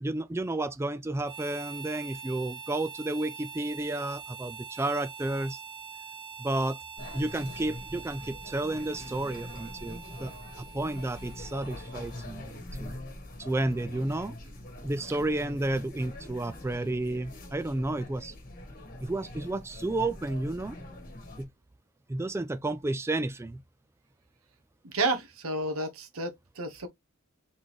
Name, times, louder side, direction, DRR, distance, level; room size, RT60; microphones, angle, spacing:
voice 1, 0.0-5.6 6.4-6.8 7.1-10.3 10.6-13.0 13.4-14.4 14.8-18.3 19.0-20.8 21.4-21.5 22.1-23.6, right 2 dB, 10° right, 0.3 m, -31 dB
Harmonica, 1.2-12.3, right 6 dB, 55° right, 2.3 m, -44 dB
sound 1, 7.0-21.4, left 1 dB, 40° left, 1.6 m, -44 dB
voice 2, 24.8-26.9, right 2 dB, 90° right, 1.2 m, -31 dB
4.0 x 3.8 x 3.0 m
head